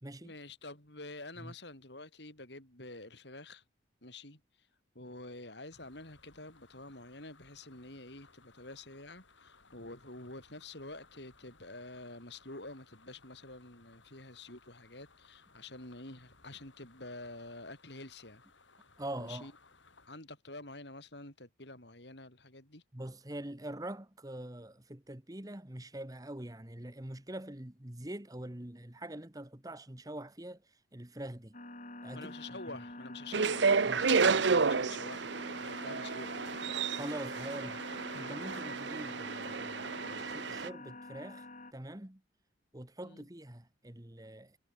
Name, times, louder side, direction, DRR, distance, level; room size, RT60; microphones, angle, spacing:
voice 1, 0.2-3.6 4.0-4.7 4.9-18.4 19.2-19.5 20.1-22.8 32.1-36.5 43.0-43.3, left 2 dB, 65° left, 6.6 m, -48 dB
sound 1, 5.7-20.1, left 3 dB, 85° left, 7.7 m, -63 dB
voice 2, 19.0-19.5 22.9-31.6 32.0-32.3 33.9-34.1 36.9-37.8 38.1-41.5 41.7-42.2 42.7-44.6, right 1 dB, 20° right, 1.4 m, -44 dB
sound 2, 31.5-41.7, left 2 dB, 40° left, 3.5 m, -46 dB
sound 3, 33.3-40.7, right 5 dB, 75° right, 0.8 m, -31 dB
head